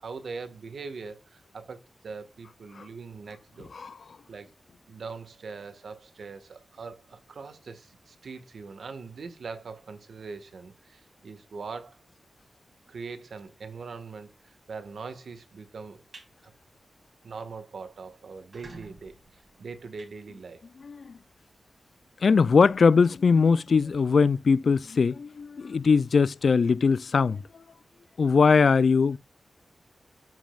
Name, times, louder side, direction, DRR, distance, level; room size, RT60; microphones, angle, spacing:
voice 1, 0.0-3.7 4.3-4.5 4.9-12.0 12.9-16.0 16.4-16.5 17.2-20.7, right 4 dB, 80° right, 1.5 m, -42 dB
sound 1, 16.1-16.3 16.7-17.0 17.3-17.4 17.7-17.8 18.3-20.8, right 2 dB, 50° right, 3.4 m, -50 dB
voice 2, 22.2-27.4 28.2-29.2, left 5 dB, 65° left, 0.3 m, -21 dB
14.0 x 5.2 x 2.4 m
wide cardioid pair, 105°, 0 cm